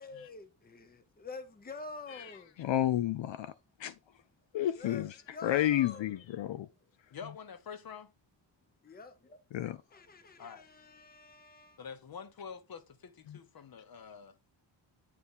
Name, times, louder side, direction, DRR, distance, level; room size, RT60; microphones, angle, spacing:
voice 1, 0.0-2.6 4.8-6.2 8.8-9.4 9.9-11.8, left 4 dB, 20° left, 0.7 m, -47 dB
voice 2, 2.1-3.5 3.8-3.9 4.5-5.1 5.4-6.7 9.5-9.8 13.3-13.4, left 12 dB, 70° left, 0.6 m, -31 dB
voice 3, 7.1-8.1 10.4-10.7 11.8-14.4, left 6 dB, 50° left, 1.0 m, -46 dB
8.1 x 4.7 x 3.7 m
wide cardioid pair, 155°, 47 cm